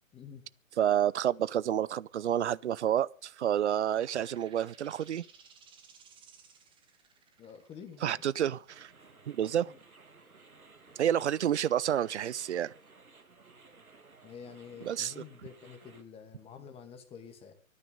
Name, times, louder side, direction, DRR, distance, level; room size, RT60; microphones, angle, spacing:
voice 1, 0.1-0.4 7.4-8.1 9.7-9.8 14.2-17.5, left 7 dB, 15° left, 2.2 m, -48 dB
voice 2, 0.8-5.2 8.0-8.9 9.3-9.7 11.0-12.7 14.8-15.2, right 10 dB, 55° right, 0.7 m, -29 dB
sound 1, 3.8-11.0, right 6 dB, 10° right, 2.1 m, -59 dB
sound 2, 8.7-16.0, right 3 dB, 90° right, 2.4 m, -57 dB
25.0 x 9.9 x 3.8 m
figure-of-eight pair, 130°, 42 cm